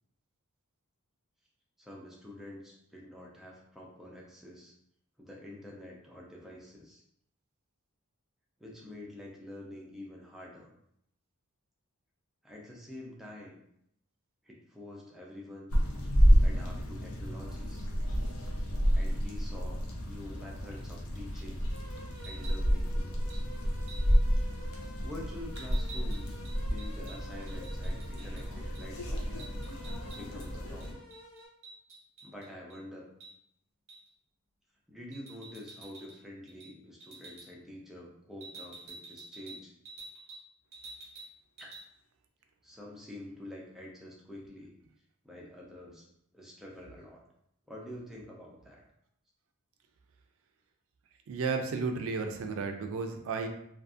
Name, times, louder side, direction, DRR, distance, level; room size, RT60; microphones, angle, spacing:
voice 1, 1.8-4.7 5.2-7.0 8.6-10.7 12.4-13.6 14.4-15.7 16.3-17.9 18.9-19.8 20.0-21.7 22.2-23.4 25.0-26.4 26.7-29.5 30.1-31.0 32.2-33.1 34.9-39.7 41.6-41.7 42.6-44.7 45.2-46.1 46.3-47.2 47.7-48.8, left 1 dB, ahead, -4 dB, 0.5 m, -47 dB
sound 1, 15.7-30.9, equal, 80° left, 0.5 m, -30 dB
sound 2, 21.7-31.5, right 1 dB, 40° left, 1.5 m, -51 dB
sound 3, 22.1-22.6 23.3-23.4 23.9-24.2 25.5-28.4 28.7-28.9 29.1-30.5 30.8-32.8 33.2-33.3 33.9-34.1 35.1-36.2 36.5-36.7 37.0-37.5 38.4-40.4 40.7-41.3 41.6-41.8, right 3 dB, 45° right, 0.9 m, -49 dB
voice 2, 51.3-53.5, right 4 dB, 65° right, 5 dB, 0.4 m, -33 dB
2.5 x 2.4 x 2.4 m, 0.74 s
head